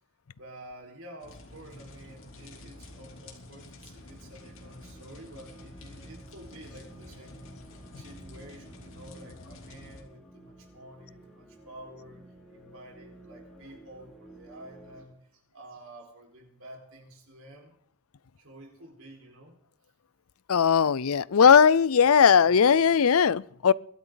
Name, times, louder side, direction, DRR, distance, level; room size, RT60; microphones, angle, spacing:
voice 1, 0.4-12.2 12.5-17.7 18.4-19.5, right 1 dB, 70° right, 4.8 m, -50 dB
sound 1, 1.2-10.0, left 1 dB, 65° left, 3.2 m, -48 dB
sound 2, 4.0-15.1, right 1 dB, ahead, 3.9 m, -54 dB
voice 2, 20.5-23.7, left 6 dB, 90° left, 0.5 m, -19 dB
24.0 x 12.5 x 4.0 m
head